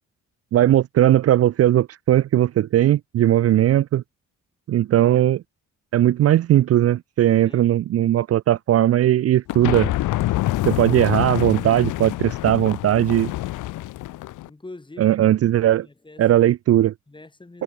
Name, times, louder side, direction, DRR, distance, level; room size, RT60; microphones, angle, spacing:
voice 1, 0.5-4.0 4.7-5.4 5.9-9.9 10.7-13.3 15.0-15.9 16.2-16.9, right 12 dB, 55° right, 0.5 m, -18 dB
voice 2, 7.4-7.8 14.5-15.2 15.8-16.3 17.1-17.6, left 2 dB, 15° left, 3.8 m, -43 dB
sound 1, 9.5-14.5, left 16 dB, 80° left, 1.0 m, -26 dB
cardioid pair, 90°, 30 cm